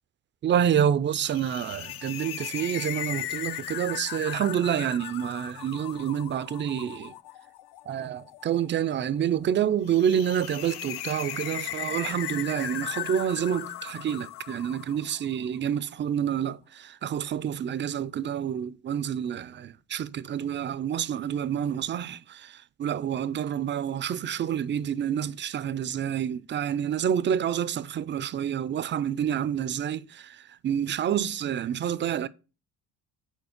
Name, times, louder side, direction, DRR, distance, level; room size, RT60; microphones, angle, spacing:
voice 1, 0.4-7.1 7.9-30.4 30.6-32.3, right 9 dB, 25° right, 0.4 m, -28 dB
sound 1, 1.1-15.5, left 13 dB, 60° left, 0.5 m, -38 dB
4.4 x 4.3 x 5.7 m
hypercardioid pair, 60°, 45 cm